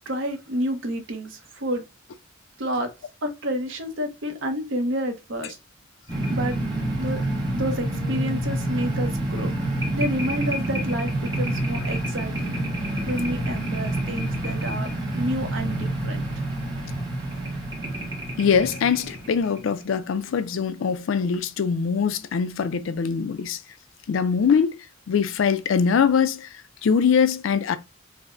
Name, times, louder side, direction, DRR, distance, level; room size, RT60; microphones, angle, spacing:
voice 1, 0.1-1.9 2.6-2.9 3.2-5.6 6.3-6.5 7.0-7.2 7.5-9.5 9.9-12.6 13.1-16.3, equal, 70° right, 0.8 m, -29 dB
sound 1, 6.1-19.7, right 1 dB, 20° right, 1.2 m, -28 dB
voice 2, 18.4-23.6 24.1-24.8 25.1-26.5 26.8-27.8, left 6 dB, 70° left, 0.4 m, -22 dB
5.0 x 2.0 x 2.5 m
head